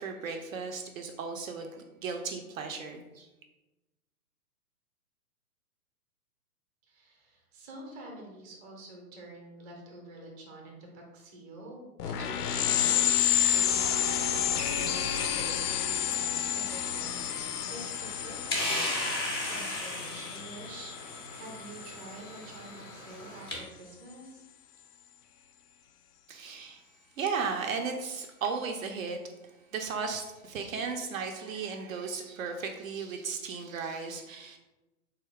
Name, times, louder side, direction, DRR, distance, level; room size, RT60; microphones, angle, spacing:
voice 1, 0.0-3.3 26.3-26.8 27.2-29.2 29.7-34.6, right 5 dB, 60° right, 4 dB, 0.5 m, -35 dB
voice 2, 6.9-18.6 19.4-24.4, right 2 dB, 20° right, 0 dB, 0.6 m, -47 dB
sound 1, 12.0-22.1, left 10 dB, 75° left, 0.5 m, -30 dB
sound 2, 16.7-23.6, left 1 dB, 20° left, 0.3 m, -37 dB
4.0 x 2.3 x 3.2 m, 1.1 s
hypercardioid pair, 130°, 47 cm